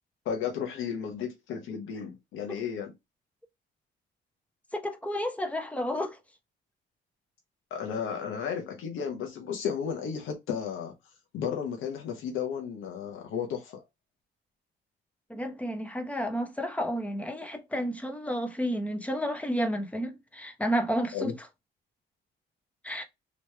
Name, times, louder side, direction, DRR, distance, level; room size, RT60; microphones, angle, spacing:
voice 1, 0.2-2.9 7.7-10.9 11.3-13.8 21.1-21.3, left 7 dB, 85° left, 0.9 m, -33 dB
voice 2, 4.7-6.2 15.3-21.5 22.8-23.0, equal, 5° left, 0.9 m, -31 dB
3.0 x 3.0 x 3.3 m
cardioid pair, 90°, 20 cm